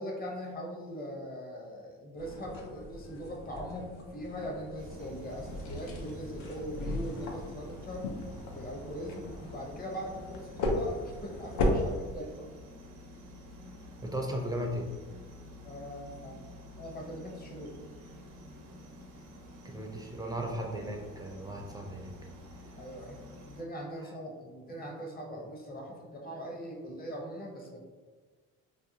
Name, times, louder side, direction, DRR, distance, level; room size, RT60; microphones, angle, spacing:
voice 1, 0.0-8.1 8.5-12.5 15.6-16.4 16.8-17.8 22.8-23.2 23.4-27.8, equal, 25° left, -1 dB, 0.8 m, -41 dB
sound 1, 2.2-12.0, left 1 dB, 75° left, 0.6 m, -36 dB
sound 2, 4.8-23.6, left 1 dB, 90° right, 0.6 m, -50 dB
voice 2, 14.0-14.9 19.6-22.1, right 1 dB, 10° right, 1 dB, 0.4 m, -36 dB
2.5 x 2.2 x 2.7 m, 1.4 s
supercardioid pair, 80°, 34 cm